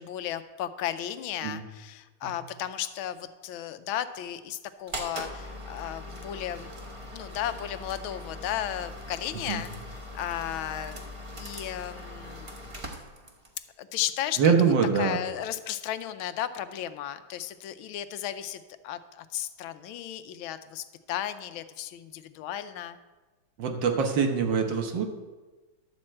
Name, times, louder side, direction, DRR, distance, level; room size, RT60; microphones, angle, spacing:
voice 1, 0.0-6.7 7.1-9.7 10.1-11.0 11.4-12.7 13.8-14.5 15.0-23.0, left 11 dB, 85° left, 12 dB, 1.4 m, -34 dB
sound 1, 4.9-13.6, left 1 dB, 30° right, 0.6 m, -41 dB
voice 2, 14.4-15.2 23.6-25.0, right 6 dB, 70° right, 4 dB, 1.7 m, -24 dB
11.5 x 4.4 x 7.5 m, 1.2 s
omnidirectional pair, 2.2 m